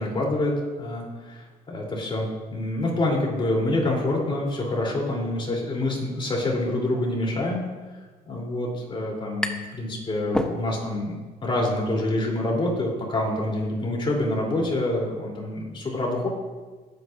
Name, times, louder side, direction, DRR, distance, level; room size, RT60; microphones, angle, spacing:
voice 1, 0.0-7.7 8.3-16.3, left 1 dB, 30° left, -2 dB, 3.6 m, -26 dB
sound 1, 9.4-9.8 10.1-11.1, left 1 dB, 5° left, 0.9 m, -30 dB
20.0 x 8.8 x 2.7 m, 1.4 s
cardioid pair, 110°, 17 cm